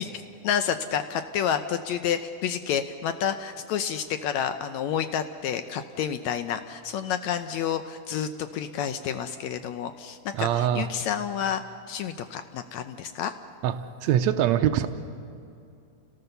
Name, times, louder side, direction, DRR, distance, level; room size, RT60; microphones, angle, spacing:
voice 1, 0.0-13.3, left 8 dB, 80° left, 9 dB, 1.6 m, -29 dB
voice 2, 10.4-10.9 13.6-13.7 14.0-14.9, right 10 dB, 85° right, 8 dB, 1.6 m, -23 dB
29.5 x 18.0 x 6.8 m, 2.5 s
omnidirectional pair, 4.1 m